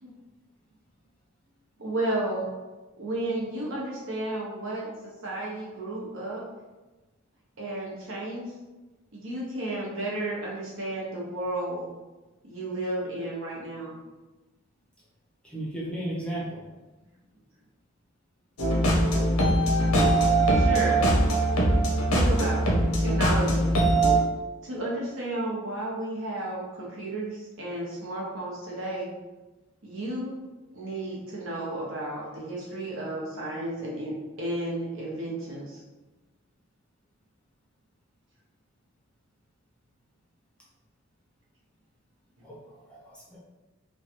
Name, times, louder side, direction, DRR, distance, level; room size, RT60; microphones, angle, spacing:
voice 1, 1.8-2.5 3.0-4.9 5.2-6.4 7.6-8.5 9.1-11.9 12.4-14.0 20.5-21.0 22.1-22.6 23.0-23.8 24.6-29.1 29.8-30.4 30.7-35.8, right 1 dB, 70° right, -5 dB, 0.9 m, -32 dB
voice 2, 15.4-16.7 42.4-43.4, right 1 dB, 5° left, -6 dB, 0.6 m, -35 dB
sound 1, 18.6-24.2, right 1 dB, 90° left, 0.7 m, -22 dB
3.1 x 2.3 x 2.8 m, 1.1 s
head